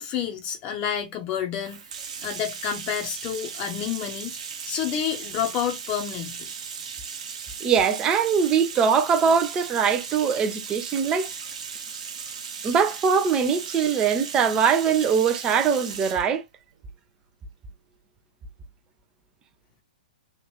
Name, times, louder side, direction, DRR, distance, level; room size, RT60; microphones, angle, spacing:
voice 1, 0.0-1.8 2.2-4.3 4.7-6.4, left 9 dB, 30° left, 0.8 m, -29 dB
Bathtub (filling or washing), 1.6-16.3, right 6 dB, 50° right, 0.9 m, -37 dB
voice 2, 7.6-11.3 12.6-16.4, right 6 dB, 20° right, 0.5 m, -22 dB
3.1 x 2.5 x 3.0 m
figure-of-eight pair, 115°, 5 cm